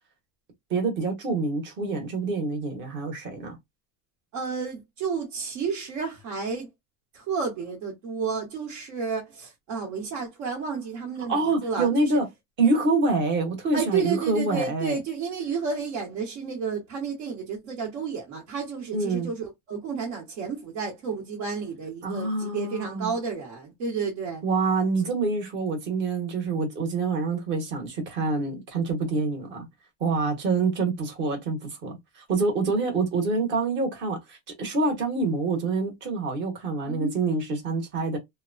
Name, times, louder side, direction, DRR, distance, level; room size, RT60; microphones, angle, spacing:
voice 1, 0.7-3.6 11.3-12.3 12.6-15.0 18.9-19.3 22.0-23.1 24.4-29.7 30.0-38.2, right 3 dB, 30° right, 1.0 m, -26 dB
voice 2, 4.3-6.7 7.1-12.2 13.7-24.4 36.9-37.1, right 5 dB, 70° right, 1.2 m, -31 dB
2.9 x 2.2 x 2.5 m
cardioid pair, 170°, 35 cm